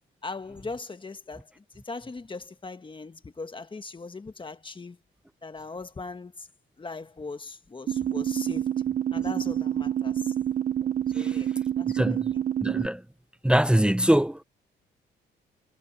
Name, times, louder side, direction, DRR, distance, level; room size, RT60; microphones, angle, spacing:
voice 1, 0.2-5.0 5.4-6.5 6.8-8.8 9.1-10.3 11.1-11.5 11.8-12.4, left 3 dB, 25° left, 1.7 m, -40 dB
sound 1, 7.9-12.9, right 10 dB, 50° right, 1.2 m, -27 dB
voice 2, 12.6-13.0 13.4-14.4, right 1 dB, 5° right, 1.0 m, -22 dB
cardioid pair, 90°, 20 cm